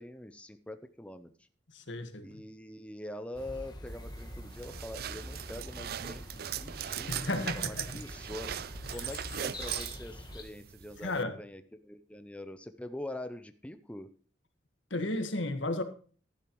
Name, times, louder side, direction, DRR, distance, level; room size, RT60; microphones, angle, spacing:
voice 1, 0.0-1.3 2.2-8.5 8.9-14.1, left 1 dB, 5° left, 9 dB, 0.6 m, -44 dB
voice 2, 1.7-2.3 7.1-7.9 11.0-11.4 14.9-15.8, left 2 dB, 85° left, 8 dB, 1.5 m, -33 dB
sound 1, 3.3-10.4, left 1 dB, 25° left, 1.6 m, -45 dB
sound 2, 3.9-11.2, right 9 dB, 55° right, 0.4 m, -40 dB
12.0 x 10.5 x 3.1 m, 0.41 s
head